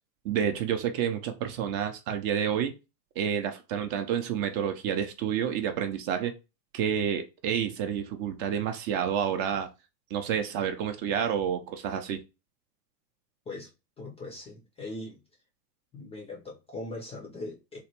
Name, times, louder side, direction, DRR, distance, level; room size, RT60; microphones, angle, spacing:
voice 1, 0.2-2.7 3.2-6.3 6.7-9.7 10.1-12.2, right 8 dB, 40° right, 0.5 m, -29 dB
voice 2, 14.0-15.2 15.9-17.8, left 2 dB, 15° left, 0.4 m, -40 dB
3.1 x 2.2 x 2.9 m
hypercardioid pair, 100°, 49 cm